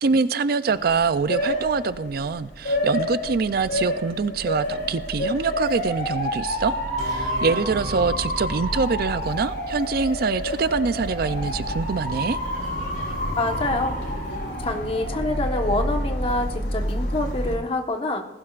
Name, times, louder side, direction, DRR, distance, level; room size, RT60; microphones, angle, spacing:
voice 1, 0.0-12.4, right 4 dB, 55° right, 13 dB, 0.5 m, -24 dB
Motor vehicle (road) / Siren, 0.7-17.5, equal, 75° left, 4.7 m, -28 dB
sound 1, 0.7-16.7, right 1 dB, 15° left, 3.9 m, -47 dB
sound 2, 7.0-10.5, equal, 40° right, 2.2 m, -37 dB
voice 2, 13.4-14.0 14.6-18.3, left 2 dB, 35° left, 4 dB, 1.2 m, -26 dB
19.5 x 16.0 x 2.5 m, 0.96 s
head